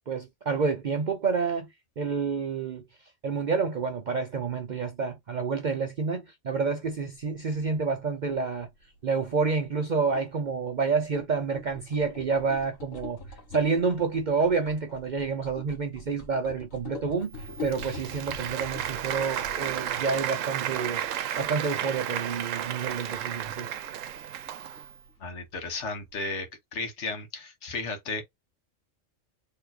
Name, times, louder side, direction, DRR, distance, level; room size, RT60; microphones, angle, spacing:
voice 1, 0.1-1.7 2.0-2.8 3.2-8.7 9.0-13.2 13.5-21.0 21.4-23.7, right 5 dB, 55° right, 0.5 m, -29 dB
sound 1, 6.9-26.4, left 3 dB, 90° left, 1.6 m, -46 dB
Applause, 17.4-25.0, right 10 dB, 85° right, 1.0 m, -33 dB
voice 2, 25.2-28.2, left 3 dB, 65° left, 1.3 m, -34 dB
4.1 x 3.0 x 2.7 m
omnidirectional pair, 1.3 m